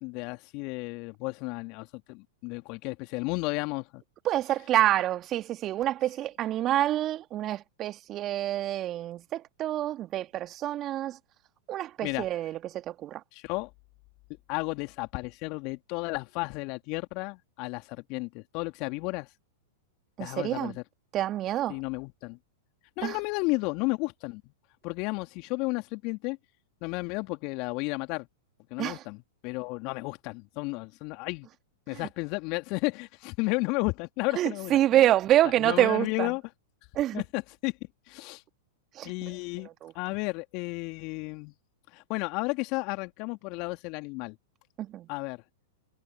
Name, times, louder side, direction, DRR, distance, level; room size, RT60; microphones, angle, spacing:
voice 1, 0.0-4.0 12.0-12.3 13.3-13.7 14.5-19.3 20.2-20.8 21.7-22.4 23.0-24.4 24.8-26.4 26.8-28.3 28.7-29.2 29.4-31.5 31.9-34.8 35.6-36.4 37.1-37.7 38.1-38.4 39.0-39.7 39.9-41.5 41.9-44.4 45.1-45.4, left 27 dB, 45° left, 2.6 m, -33 dB
voice 2, 4.2-11.2 11.7-13.2 20.2-20.8 21.1-21.8 23.0-23.2 28.8-29.0 31.9-32.1 34.3-36.3 36.9-37.2 38.9-39.1 39.6-39.9 44.8-45.1, right 13 dB, 35° right, 1.9 m, -27 dB
figure-of-eight pair, 100°, 0 cm